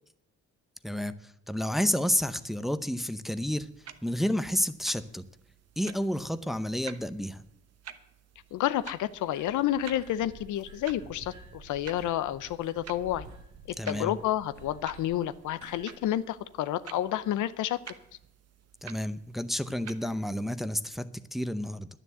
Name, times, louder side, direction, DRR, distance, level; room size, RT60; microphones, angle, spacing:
voice 1, 0.8-1.2 1.5-3.7 4.0-5.2 5.8-7.4 13.8-14.1 18.8-21.9, equal, ahead, 12 dB, 0.7 m, -30 dB
sound 1, 3.4-20.1, right 8 dB, 55° right, 1.0 m, -51 dB
voice 2, 8.5-13.3 13.7-17.8, left 12 dB, 80° left, 14 dB, 0.7 m, -30 dB
sound 2, 8.5-16.1, right 3 dB, 70° right, 1.6 m, -51 dB
10.5 x 9.9 x 7.9 m, 0.80 s
cardioid pair, 90°, 30 cm